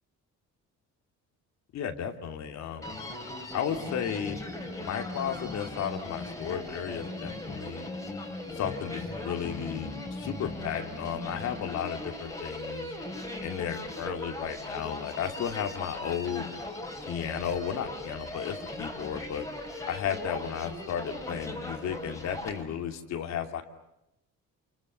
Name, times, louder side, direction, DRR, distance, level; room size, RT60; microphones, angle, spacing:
voice 1, 1.7-3.0 3.5-4.4 4.8-7.8 8.5-12.9 13.4-16.5 17.0-19.5 19.8-23.6, left 8 dB, 65° left, 5 dB, 2.8 m, -34 dB
Human voice, 2.8-22.6, left 2 dB, 10° left, 4.1 m, -39 dB
29.5 x 29.0 x 6.8 m, 0.85 s
cardioid pair, 170°, 30 cm